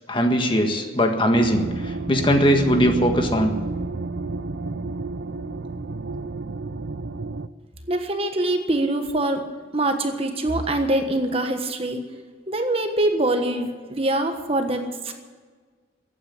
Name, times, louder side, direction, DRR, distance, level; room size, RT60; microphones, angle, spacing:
voice 1, 0.1-3.5, equal, 30° left, 4 dB, 1.7 m, -20 dB
sound 1, 1.3-7.5, right 3 dB, 80° right, 0.6 m, -30 dB
voice 2, 7.9-9.4 9.7-12.0 12.5-15.1, right 1 dB, 30° right, 6 dB, 1.3 m, -24 dB
15.0 x 9.4 x 9.7 m, 1.5 s
head